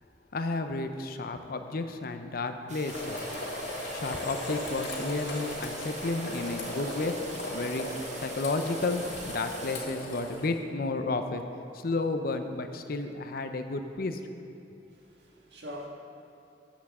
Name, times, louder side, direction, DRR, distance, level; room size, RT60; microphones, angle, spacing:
voice 1, 0.3-3.3 3.9-7.2 7.5-11.4 11.7-14.2, left 3 dB, 55° left, 0.6 m, -32 dB
sound 1, 2.7-9.8, right 7 dB, 40° right, 0.5 m, -46 dB
sound 2, 2.9-10.5, left 1 dB, 75° left, 1.9 m, -36 dB
voice 2, 14.9-15.9, equal, 70° right, 1.7 m, -43 dB
14.0 x 8.2 x 3.7 m
head